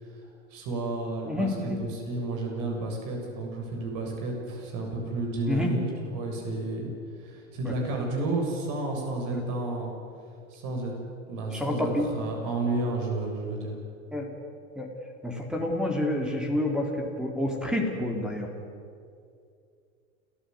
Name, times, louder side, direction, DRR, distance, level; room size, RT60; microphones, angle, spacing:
voice 1, 0.0-6.9 7.2-9.9 10.5-10.9 11.3-13.7, right 2 dB, 50° right, 1 dB, 7.6 m, -31 dB
voice 2, 1.3-1.8 5.5-5.7 9.3-9.4 11.5-12.1 14.1-14.3 14.8-14.9 15.2-18.5, left 1 dB, ahead, 2 dB, 3.4 m, -28 dB
29.0 x 14.5 x 9.6 m, 2.4 s
hypercardioid pair, 110°, 39 cm